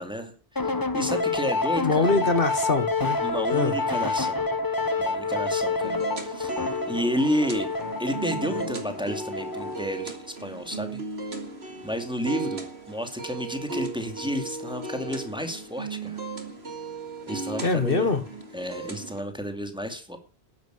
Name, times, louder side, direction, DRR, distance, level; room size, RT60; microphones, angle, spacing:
voice 1, 0.0-2.1 3.2-4.4 5.0-6.6 6.9-7.7 8.0-11.0 11.8-12.6 12.9-16.2 17.3-18.2 18.5-20.2, equal, 5° right, 6 dB, 2.4 m, -31 dB
sound 1, 0.6-10.0, left 3 dB, 20° left, 1.0 m, -28 dB
voice 2, 1.8-3.2 3.5-3.7 17.6-18.2, left 3 dB, 55° left, 10 dB, 1.7 m, -23 dB
sound 2, 5.8-19.2, right 3 dB, 75° right, 2.9 m, -36 dB
11.5 x 10.5 x 8.1 m, 0.36 s
omnidirectional pair, 1.1 m